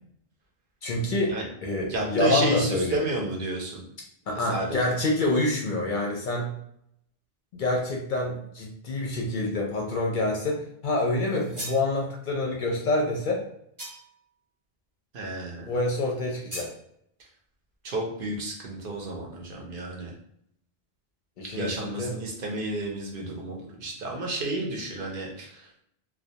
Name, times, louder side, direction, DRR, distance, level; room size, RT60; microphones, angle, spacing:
voice 1, 0.8-3.0 4.3-6.5 7.5-13.5 15.7-16.7 21.4-22.2, left 2 dB, 60° left, -1 dB, 0.6 m, -27 dB
voice 2, 1.9-3.8 4.4-4.8 15.1-15.8 17.8-20.1 21.5-25.8, right 2 dB, 65° right, -1 dB, 0.7 m, -31 dB
sound 1, 11.3-11.9 13.8-14.2 16.5-16.8, right 1 dB, 20° right, 0.8 m, -38 dB
2.3 x 2.1 x 2.7 m, 0.70 s
omnidirectional pair, 1.1 m